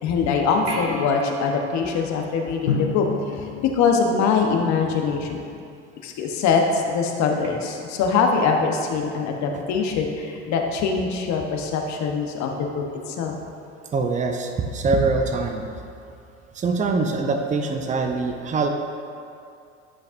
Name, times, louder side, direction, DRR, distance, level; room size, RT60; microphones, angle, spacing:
voice 1, 0.0-3.5 3.7-5.5 6.0-13.3, left 5 dB, 50° left, 2 dB, 1.1 m, -23 dB
sound 1, 0.7-3.4 7.4-7.5, right 2 dB, 45° right, 1.4 m, -37 dB
Drum, 2.7-5.3, left 5 dB, 90° left, 0.7 m, -31 dB
voice 2, 13.9-15.6 16.5-18.7, right 3 dB, 20° right, 5 dB, 0.6 m, -23 dB
11.0 x 5.7 x 2.6 m, 2.4 s
hypercardioid pair, 75°, 35 cm